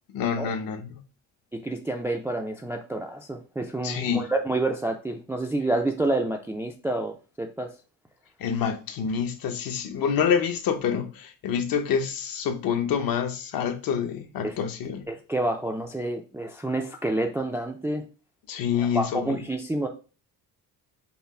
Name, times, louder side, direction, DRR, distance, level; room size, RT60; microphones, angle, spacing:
voice 1, 0.1-1.0 3.8-4.3 8.4-15.0 18.5-19.4, left 7 dB, 65° left, 0.9 m, -27 dB
voice 2, 1.5-7.7 14.4-14.6 15.1-18.0 18.8-19.9, right 2 dB, 5° right, 0.3 m, -28 dB
5.7 x 2.0 x 4.2 m
cardioid pair, 155°, 37 cm